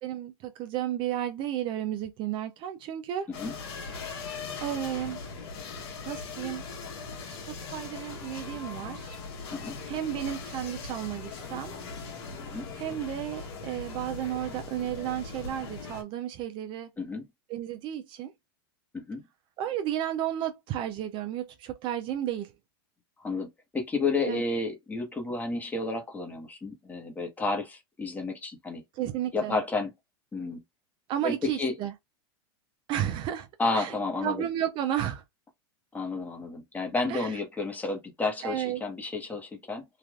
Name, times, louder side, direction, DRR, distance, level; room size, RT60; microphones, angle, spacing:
voice 1, 0.0-3.3 4.0-4.3 4.6-5.2 6.1-6.6 7.2-9.2 9.9-11.7 12.7-16.9 17.5-18.3 19.6-22.5 24.2-24.4 28.9-29.6 31.1-31.9 32.9-33.5 33.7-34.0 34.2-35.2 37.1-37.3 38.4-38.8, right 11 dB, 40° right, 0.5 m, -33 dB
sound 1, 3.3-16.0, left 4 dB, 75° left, 1.4 m, -40 dB
voice 2, 17.0-17.3 18.9-19.2 23.2-23.5 23.7-28.8 29.3-29.9 30.3-30.6 31.2-31.7 33.6-34.5 35.9-39.8, left 3 dB, 10° left, 1.0 m, -31 dB
3.3 x 2.4 x 2.2 m
supercardioid pair, 130°, 13 cm